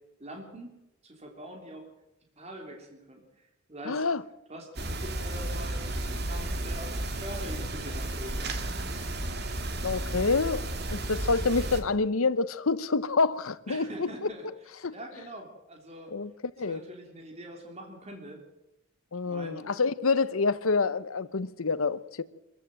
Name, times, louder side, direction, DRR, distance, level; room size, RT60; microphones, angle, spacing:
voice 1, 0.2-0.8 1.0-1.9 2.4-4.1 4.5-8.5 13.7-14.5 14.9-16.1 16.6-18.4 19.3-19.7, right 1 dB, 30° right, 3.5 m, -44 dB
voice 2, 3.8-4.2 9.8-10.6 10.9-14.1 14.8-14.9 16.1-16.3 16.6-16.8 19.1-22.2, left 4 dB, 85° left, 0.9 m, -27 dB
sound 1, 4.8-11.8, right 1 dB, 50° right, 2.3 m, -33 dB
24.5 x 15.0 x 7.7 m
head